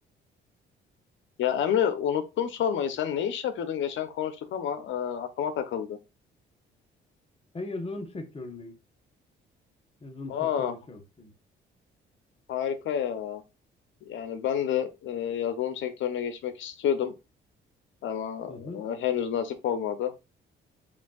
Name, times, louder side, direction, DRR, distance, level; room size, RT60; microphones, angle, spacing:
voice 1, 1.4-6.0 10.3-10.7 12.5-13.4 14.1-17.1 18.0-20.1, left 9 dB, 75° left, 0.8 m, -29 dB
voice 2, 7.5-8.8 10.0-11.3 18.5-18.8, left 2 dB, 30° left, 1.2 m, -38 dB
7.1 x 2.6 x 2.4 m
cardioid pair, 90°, 20 cm